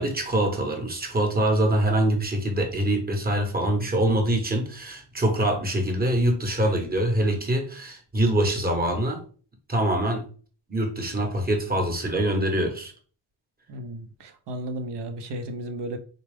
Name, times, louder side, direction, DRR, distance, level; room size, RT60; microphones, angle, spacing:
voice 1, 0.0-9.2 9.7-10.2 10.7-12.9, right 1 dB, 20° right, 1.0 m, -24 dB
voice 2, 13.7-16.0, right 1 dB, 60° right, 0.8 m, -34 dB
3.6 x 2.3 x 3.3 m
cardioid pair, 90°, 47 cm